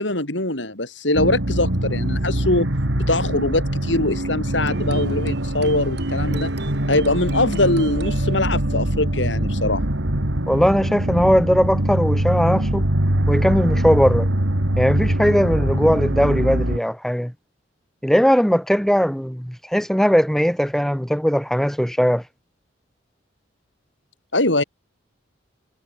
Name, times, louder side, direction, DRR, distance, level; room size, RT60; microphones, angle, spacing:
voice 1, 0.0-2.7 3.0-6.5 6.9-9.8 24.3-24.6, left 2 dB, 70° left, 7.9 m, -22 dB
sound 1, 1.1-16.8, right 1 dB, 85° right, 2.9 m, -23 dB
sound 2, 4.6-10.1, right 2 dB, 60° right, 7.0 m, -36 dB
voice 2, 10.5-12.9 13.3-14.3 14.8-17.3 18.0-22.2, equal, ahead, 1.1 m, -19 dB
head